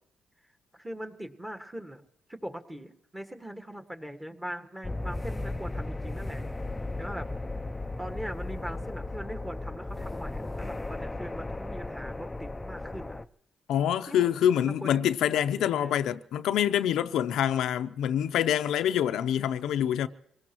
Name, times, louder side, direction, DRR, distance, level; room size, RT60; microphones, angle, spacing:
voice 1, 0.7-2.0 2.3-6.7 7.0-7.3 8.0-13.1 14.1-14.3 14.6-15.0 15.3-16.1, equal, 10° right, 1.6 m, -41 dB
sound 1, 4.8-13.2, left 2 dB, 15° left, 0.5 m, -36 dB
voice 2, 13.7-20.1, left 10 dB, 80° left, 0.6 m, -26 dB
25.5 x 18.5 x 3.0 m
cardioid pair, 90°, 0 cm